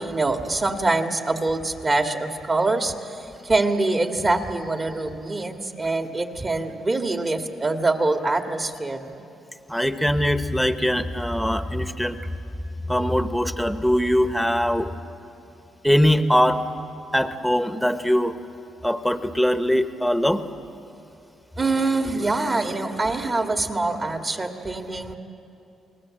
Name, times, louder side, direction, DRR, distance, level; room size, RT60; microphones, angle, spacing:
voice 1, 0.0-9.1 21.6-25.2, right 2 dB, 30° right, 5 dB, 1.9 m, -24 dB
voice 2, 9.7-12.2 12.9-14.9 15.8-16.6 17.1-18.3 18.8-20.4, equal, ahead, 9 dB, 1.1 m, -21 dB
28.5 x 19.0 x 7.7 m, 2.9 s
cardioid pair, 90°, 0 cm